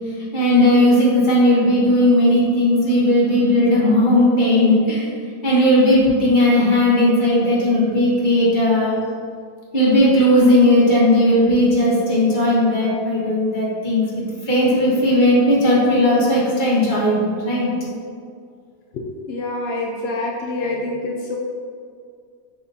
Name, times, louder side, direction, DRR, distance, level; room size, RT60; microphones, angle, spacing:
voice 1, 0.3-5.1 5.4-9.0 9.7-17.7, left 1 dB, 30° left, -6 dB, 1.6 m, -16 dB
voice 2, 18.9-21.4, left 2 dB, 70° left, 0 dB, 0.6 m, -26 dB
6.6 x 5.5 x 2.8 m, 2.2 s
omnidirectional pair, 1.7 m